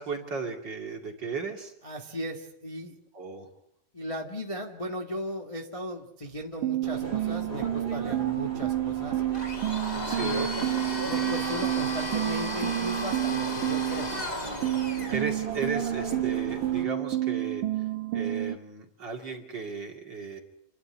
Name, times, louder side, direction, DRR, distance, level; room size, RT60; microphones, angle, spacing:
voice 1, 0.0-1.7 3.1-3.5 10.1-10.5 15.1-17.6 18.1-20.4, right 5 dB, 35° right, 2 dB, 2.8 m, -35 dB
voice 2, 1.8-3.0 3.9-9.2 9.9-10.5 11.0-14.1 14.8-14.9, equal, 15° left, 0 dB, 1.2 m, -36 dB
sound 1, 6.6-14.3 14.6-18.6, right 14 dB, 80° right, 2.9 m, -30 dB
sound 2, 6.8-16.8, right 3 dB, 20° right, 3.3 m, -40 dB
Domestic sounds home sounds, 9.3-15.2, left 1 dB, 45° left, 0.5 m, -35 dB
29.0 x 12.0 x 9.8 m, 0.80 s
omnidirectional pair, 3.8 m